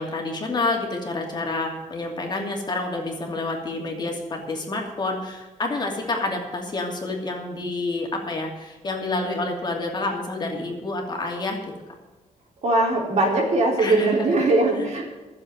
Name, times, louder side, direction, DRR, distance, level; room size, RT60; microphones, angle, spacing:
voice 1, 0.0-11.6 13.8-14.3 14.8-14.9, left 2 dB, 35° left, 1 dB, 2.8 m, -28 dB
voice 2, 12.6-15.0, right 2 dB, 60° right, -1 dB, 4.1 m, -20 dB
13.0 x 7.5 x 9.1 m, 1.2 s
wide cardioid pair, 135°, 13 cm